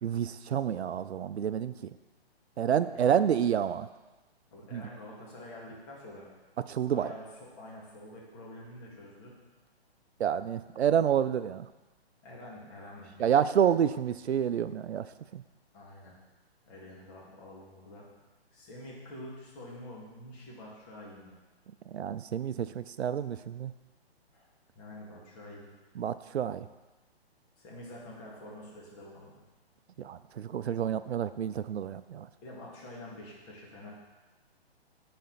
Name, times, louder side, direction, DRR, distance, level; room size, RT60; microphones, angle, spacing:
voice 1, 0.0-1.7 2.6-3.9 4.7-4.8 6.7-7.1 10.2-11.7 13.2-15.1 15.3-15.4 21.9-23.7 26.0-26.7 30.0-32.3, right 9 dB, 90° right, 13 dB, 0.5 m, -29 dB
voice 2, 2.6-3.2 4.5-6.3 6.9-9.4 12.2-13.5 15.7-16.1 16.7-18.1 18.5-21.4 24.3-24.5 24.7-25.7 27.6-29.4 32.4-33.9, left 1 dB, 30° left, -4 dB, 2.1 m, -47 dB
11.5 x 4.3 x 4.1 m, 1.2 s
hypercardioid pair, 145°, 32 cm